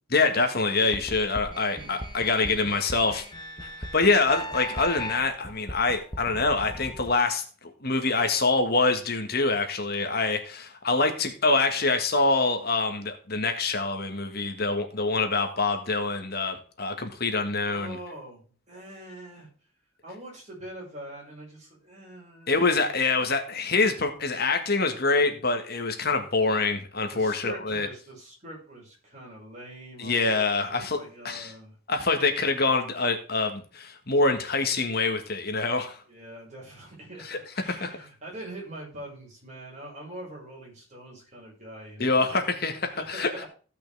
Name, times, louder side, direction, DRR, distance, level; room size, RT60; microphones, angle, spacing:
voice 1, 0.1-3.2 3.6-7.4 7.8-18.0 22.5-27.9 30.0-31.0 31.2-31.5 31.9-36.0 37.3-37.4 37.7-37.9 42.0-43.3, left 3 dB, 50° left, 5 dB, 1.7 m, -25 dB
sound 1, 0.9-7.1, equal, 20° left, 1.4 m, -38 dB
voice 2, 1.7-2.0 17.7-19.5 20.0-22.6 27.1-31.8 36.1-42.4 42.9-43.5, right 1 dB, 35° right, -3 dB, 5.8 m, -43 dB
16.0 x 6.0 x 3.5 m, 0.40 s
head